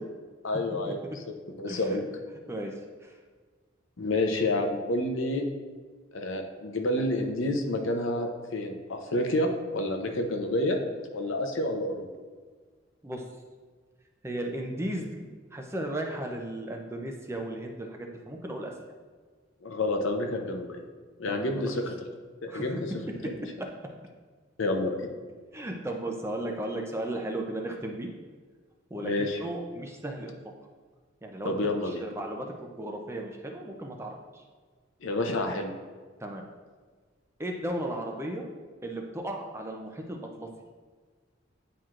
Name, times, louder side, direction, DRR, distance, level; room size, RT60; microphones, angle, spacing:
voice 1, 0.4-1.0 1.6-2.0 4.0-5.5 6.1-10.8 11.1-12.1 19.6-20.8 21.2-21.9 22.4-22.9 24.6-25.1 29.0-29.4 31.4-32.0 35.0-35.7, left 1 dB, 80° left, 4 dB, 0.7 m, -29 dB
voice 2, 1.7-2.0 2.5-2.7 3.0-3.2 13.0-13.2 14.2-15.2 15.5-18.7 21.3-21.6 22.5-22.8 23.6-23.7 25.5-28.1 28.9-30.3 31.2-34.4 36.2-36.4 37.4-38.5 38.8-40.5, right 1 dB, 15° right, 2 dB, 0.5 m, -35 dB
9.3 x 4.4 x 2.5 m, 1.5 s
head